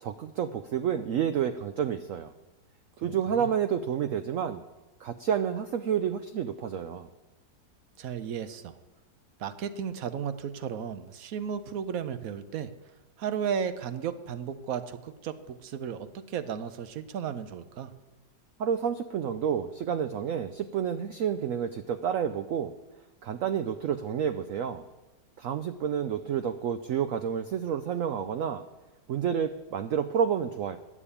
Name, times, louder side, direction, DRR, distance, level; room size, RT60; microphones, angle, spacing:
voice 1, 0.0-2.3 3.0-4.6 5.0-7.1 18.6-22.7 23.2-24.8 25.4-28.6 29.1-30.8, right 8 dB, 90° right, 11 dB, 0.7 m, -29 dB
voice 2, 8.0-8.7 9.4-12.7 13.2-17.9, right 7 dB, 65° right, 12 dB, 0.9 m, -34 dB
9.7 x 7.2 x 8.3 m, 1.1 s
omnidirectional pair, 1.9 m